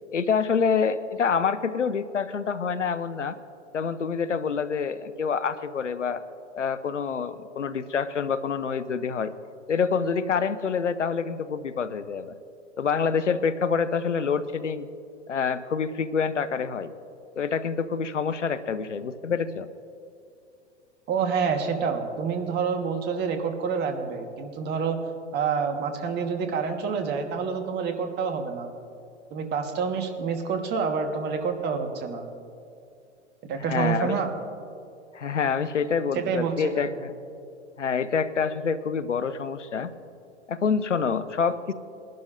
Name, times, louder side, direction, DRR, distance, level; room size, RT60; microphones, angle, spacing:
voice 1, 0.1-3.4 3.7-6.2 6.5-9.3 9.7-12.3 12.8-14.9 15.3-16.9 17.4-19.7 33.7-34.2 35.1-37.1 37.8-39.9 40.5-41.7, left 6 dB, 85° left, 14 dB, 0.6 m, -27 dB
voice 2, 21.1-25.0 25.3-28.7 29.3-32.3 33.4-34.3 36.1-36.9, right 6 dB, 30° right, 5 dB, 1.3 m, -28 dB
21.5 x 11.5 x 2.5 m, 2.5 s
figure-of-eight pair, 100°, 35 cm